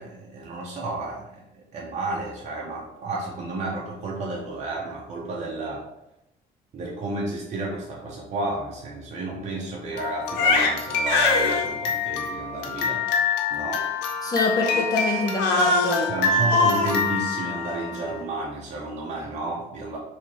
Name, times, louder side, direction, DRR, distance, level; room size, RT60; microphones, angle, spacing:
voice 1, 0.0-5.9 6.7-13.1 13.5-13.9 16.1-20.0, right 2 dB, 45° right, -3 dB, 0.7 m, -32 dB
Crying sobbing, 10.0-18.1, left 4 dB, 85° left, 0.7 m, -24 dB
voice 2, 14.2-16.1, left 2 dB, 20° left, 1 dB, 0.8 m, -25 dB
2.9 x 2.5 x 4.2 m, 0.86 s
cardioid pair, 110°, 17 cm